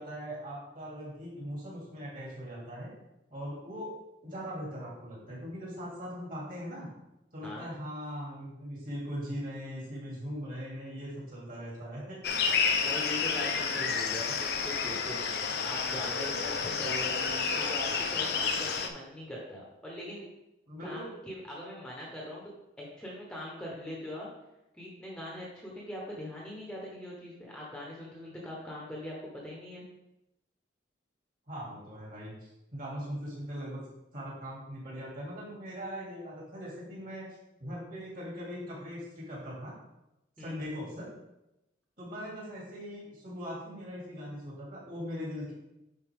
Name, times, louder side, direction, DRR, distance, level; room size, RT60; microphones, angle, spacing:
voice 1, 0.0-2.9 3.3-3.9 4.2-6.9 7.3-12.2 20.7-21.1 31.5-32.3 32.7-33.8 34.1-37.3 37.6-39.7 40.4-41.1 42.0-45.5, equal, 45° right, -5 dB, 2.8 m, -40 dB
sound 1, 12.2-18.9, left 5 dB, 55° left, 0.6 m, -30 dB
voice 2, 12.8-15.2 15.6-20.3 20.8-22.4 22.8-24.3 24.8-29.8 40.4-40.6, left 1 dB, 5° left, -4 dB, 1.0 m, -41 dB
9.6 x 4.1 x 3.5 m, 0.92 s
head